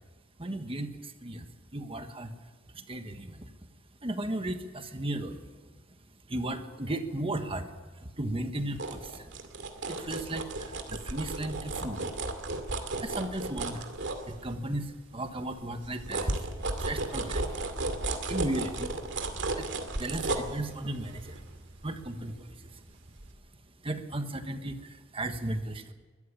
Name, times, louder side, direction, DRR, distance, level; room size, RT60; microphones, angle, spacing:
voice 1, 0.4-2.3 2.7-3.5 4.0-5.4 6.3-7.7 8.0-9.3 9.9-12.1 13.0-16.3 16.8-17.6 18.3-18.9 19.5-19.7 20.0-21.4 21.8-22.6 23.8-25.9, right 1 dB, 25° right, 7 dB, 1.4 m, -35 dB
sound 1, 8.5-14.8 15.2-22.8 23.2-23.3, right 2 dB, 65° right, 2.3 m, -35 dB
22.0 x 13.5 x 8.7 m, 1.3 s
head